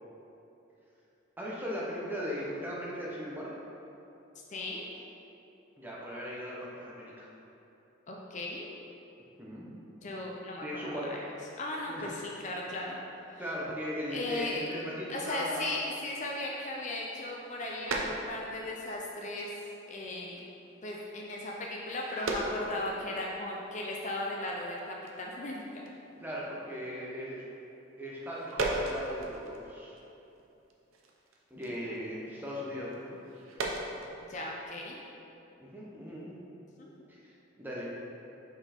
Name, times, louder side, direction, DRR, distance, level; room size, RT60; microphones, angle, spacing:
voice 1, 1.4-3.5 5.8-7.3 9.4-9.7 10.6-11.1 11.9-12.1 13.4-15.6 26.2-27.4 28.0-29.9 31.5-33.2 35.6-36.3 37.1-38.2, equal, 10° right, -6 dB, 0.9 m, -38 dB
voice 2, 4.5-4.9 8.1-8.7 10.0-11.2 11.6-13.0 14.1-14.6 15.1-19.5 19.9-20.5 20.8-25.8 34.3-35.0 36.8-36.9, left 1 dB, 35° left, -2 dB, 0.5 m, -37 dB
sound 1, 17.0-18.7 19.0-19.4 19.9-20.1 20.4-20.5 20.7-20.9 21.7-23.2 23.6-23.7 23.9-24.3 24.7-24.8 25.1-25.5 25.7-26.0 26.3-26.4 28.1-30.0 30.3-34.1, right 2 dB, 85° right, 0.7 m, -37 dB
5.6 x 4.6 x 4.3 m, 2.9 s
head